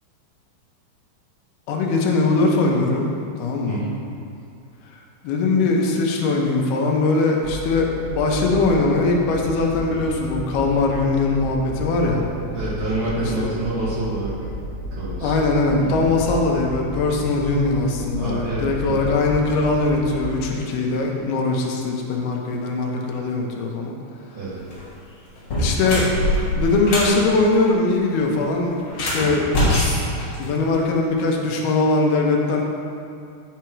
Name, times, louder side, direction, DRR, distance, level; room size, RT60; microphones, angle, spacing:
voice 1, 1.7-3.1 3.4-3.8 5.2-12.2 13.4-13.5 15.2-23.9 25.6-26.1 26.6-29.5 30.4-32.6, left 3 dB, 75° left, 0 dB, 2.6 m, -21 dB
sound 1, 7.4-20.5, right 1 dB, 90° right, 3.2 m, -32 dB
voice 2, 12.5-14.3 14.9-15.3 15.8-15.9 18.2-19.1 24.3-24.6, right 2 dB, 40° right, -9 dB, 2.0 m, -27 dB
sound 2, 24.6-24.8 25.4-27.2 28.8-30.9, left 1 dB, 40° left, 2.7 m, -23 dB
8.9 x 5.9 x 4.6 m, 2.5 s
omnidirectional pair, 5.1 m